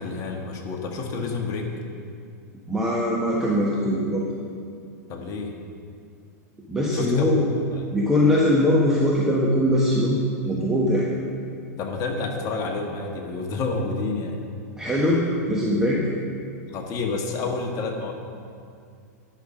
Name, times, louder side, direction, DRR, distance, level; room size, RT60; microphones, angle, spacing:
voice 1, 0.0-1.7 5.1-5.5 6.9-7.9 11.8-14.4 16.7-18.1, left 3 dB, 40° left, 2 dB, 1.5 m, -29 dB
voice 2, 2.7-4.3 6.7-7.5 7.9-10.2 10.5-11.1 14.8-16.0, left 1 dB, 5° right, -5 dB, 1.2 m, -21 dB
10.5 x 5.7 x 6.4 m, 2.3 s
hypercardioid pair, 110°, 9 cm